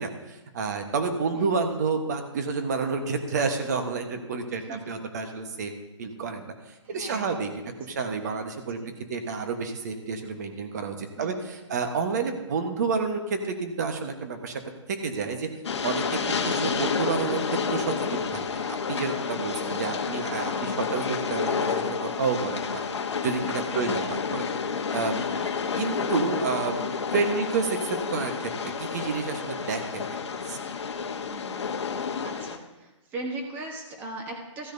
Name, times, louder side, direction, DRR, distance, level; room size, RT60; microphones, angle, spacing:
voice 1, 0.0-5.7 6.0-6.5 6.9-8.8 9.1-14.6 14.9-15.5 15.8-22.8 23.2-24.4 24.9-25.2 25.8-26.8 27.1-28.5 28.8-30.2 30.5-30.6, right 4 dB, 35° right, 6 dB, 1.2 m, -29 dB
voice 2, 4.4-4.8 6.8-7.5 7.8-8.0 8.8-8.9 11.1-11.7 16.2-16.6 19.6-20.0 23.7-24.0 25.3-25.7 31.3-31.6 32.2-34.7, right 2 dB, 10° right, 2 dB, 1.2 m, -40 dB
Train, 15.6-32.6, left 6 dB, 60° left, 1.1 m, -30 dB
15.5 x 10.0 x 2.7 m, 1.1 s
hypercardioid pair, 165°, 16 cm